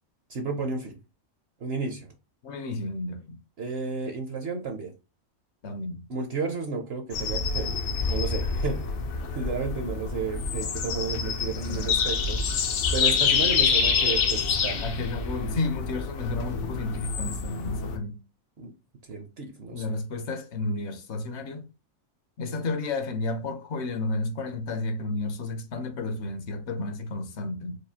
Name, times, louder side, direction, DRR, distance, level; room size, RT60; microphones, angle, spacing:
voice 1, 0.3-1.0 1.6-2.1 3.6-4.9 6.1-8.8 9.3-12.4 12.9-14.8 18.6-18.7 19.1-19.9, right 4 dB, 60° right, 0.8 m, -32 dB
voice 2, 2.4-3.4 5.6-6.0 11.6-12.1 14.8-18.2 19.7-21.7 22.4-27.8, left 2 dB, 65° left, 0.8 m, -32 dB
sound 1, 7.1-18.0, left 5 dB, 80° left, 1.1 m, -27 dB
4.8 x 2.3 x 2.7 m
omnidirectional pair, 1.4 m